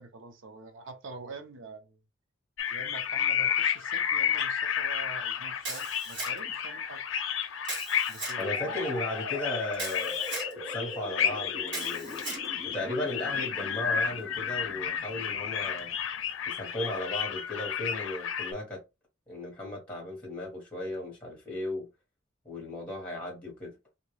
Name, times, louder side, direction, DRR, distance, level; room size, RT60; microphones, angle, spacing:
voice 1, 0.0-2.0 2.7-7.0 8.1-8.8, right 3 dB, 75° right, 0.7 m, -46 dB
sound 1, 2.6-18.5, left 8 dB, 75° left, 0.5 m, -32 dB
Camera, 5.6-6.6 7.6-8.4 9.7-10.5 11.7-12.5, right 2 dB, 60° right, 1.8 m, -37 dB
voice 2, 8.4-10.2 10.7-12.2 12.6-15.9 16.5-18.8 19.3-21.9 22.4-23.7, left 1 dB, 5° left, 1.4 m, -36 dB
sound 2, 8.5-16.2, equal, 35° right, 0.8 m, -43 dB
2.8 x 2.7 x 3.3 m
head